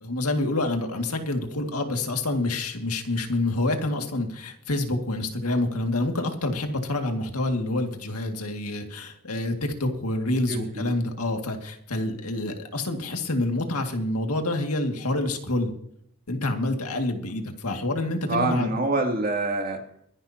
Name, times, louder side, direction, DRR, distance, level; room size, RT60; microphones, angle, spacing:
voice 1, 0.0-15.7 16.3-18.8, left 2 dB, 75° left, 4 dB, 2.2 m, -27 dB
voice 2, 10.4-10.9 18.3-19.8, right 2 dB, 40° right, 2 dB, 2.7 m, -26 dB
23.5 x 11.0 x 2.9 m, 0.70 s
head